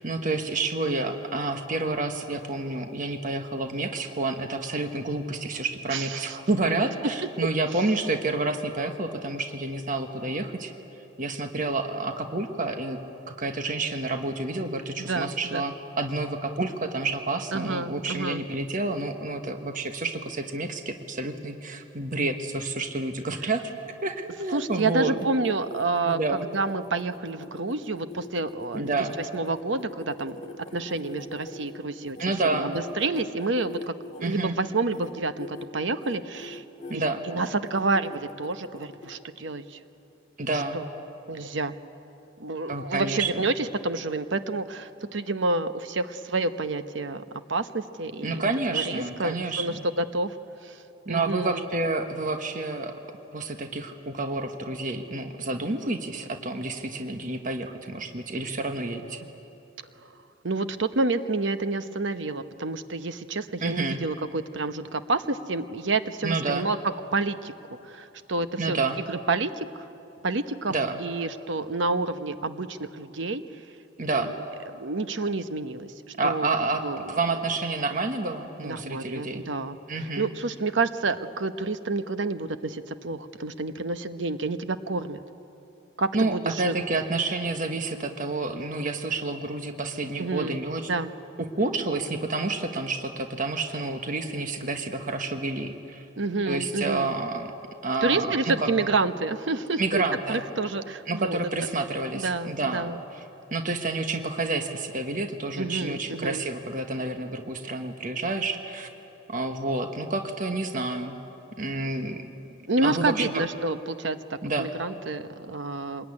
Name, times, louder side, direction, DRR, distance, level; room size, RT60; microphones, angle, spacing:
voice 1, 0.0-10.7 11.2-13.0 13.3-23.7 24.0-25.1 26.0-26.4 28.7-29.1 32.2-32.7 34.2-34.6 36.9-37.2 40.4-40.8 42.7-43.3 48.2-49.8 51.1-53.0 53.3-59.2 63.6-64.0 66.2-66.7 68.6-69.0 70.7-71.0 74.0-74.3 76.2-76.8 77.1-79.4 79.9-80.3 86.1-90.9 91.4-96.0 96.4-97.5 97.8-98.9 99.8-100.4 101.1-102.9 103.5-108.9 109.3-111.2 111.6-112.3 112.8-113.4 114.4-114.7, right 2 dB, 40° right, 6 dB, 1.3 m, -29 dB
voice 2, 5.9-6.4 15.0-15.6 17.5-18.4 24.5-26.2 26.5-28.9 29.3-32.2 32.5-36.6 36.9-39.8 40.5-40.8 41.3-41.7 42.4-48.4 48.7-50.4 50.6-50.8 51.1-51.7 60.0-60.1 60.4-66.8 67.1-67.5 67.8-68.8 69.1-69.9 70.2-70.7 71.0-73.4 74.2-74.3 74.7-76.5 76.8-77.1 78.6-79.8 80.2-85.2 86.0-86.7 90.2-90.6 90.9-91.1 96.2-97.1 98.0-100.0 100.3-101.4 102.1-103.0 105.6-106.5 112.7-116.0, right 3 dB, 65° right, 11 dB, 0.9 m, -29 dB
sound 1, 24.4-32.2 32.7-34.4 34.8-35.1 35.4-35.7 36.0-37.0 37.4-39.2, left 2 dB, 35° left, 2.0 m, -43 dB
25.0 x 20.5 x 9.8 m, 2.9 s
head